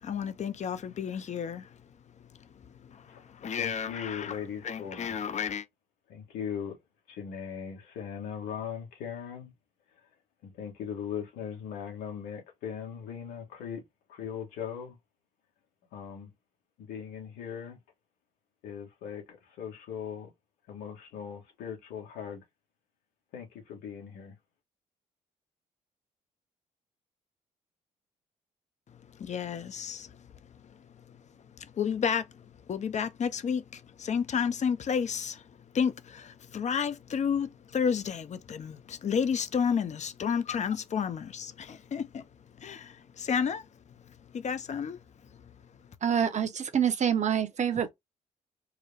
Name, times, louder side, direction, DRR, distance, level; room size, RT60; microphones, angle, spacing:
voice 1, 0.0-1.8 2.5-5.6 29.2-30.3 30.6-31.2 31.6-35.4 35.7-42.3 42.6-43.7 44.1-45.0 45.3-45.5, left 7 dB, 45° left, 0.8 m, -32 dB
voice 2, 3.5-5.1 6.1-6.7 7.1-9.5 10.4-13.8 14.1-15.0 15.9-16.3 16.8-17.8 18.6-20.3 20.7-22.4 23.3-24.3, left 8 dB, 80° left, 1.8 m, -39 dB
voice 3, 46.0-47.9, right 8 dB, 45° right, 1.0 m, -26 dB
4.7 x 2.3 x 3.4 m
hypercardioid pair, 50°, 16 cm